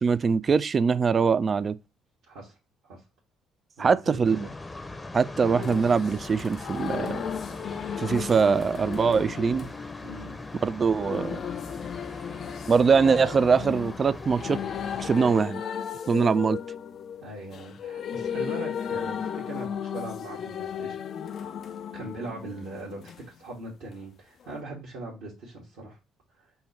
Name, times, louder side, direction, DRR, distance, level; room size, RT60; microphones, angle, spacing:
voice 1, 0.0-1.8 3.8-4.5 5.1-7.2 8.0-9.7 10.6-11.4 12.7-14.6 15.0-15.6 16.1-16.6, right 5 dB, 40° right, 0.3 m, -23 dB
voice 2, 3.8-4.5 10.0-10.4 17.2-21.0 21.9-26.0 26.4-26.5, right 2 dB, 65° right, 1.3 m, -40 dB
sound 1, 4.2-15.4, left 2 dB, 20° left, 0.7 m, -41 dB
sound 2, 5.4-23.2 24.5-24.6, left 8 dB, 55° left, 0.4 m, -35 dB
5.5 x 2.3 x 4.1 m
hypercardioid pair, 50°, 0 cm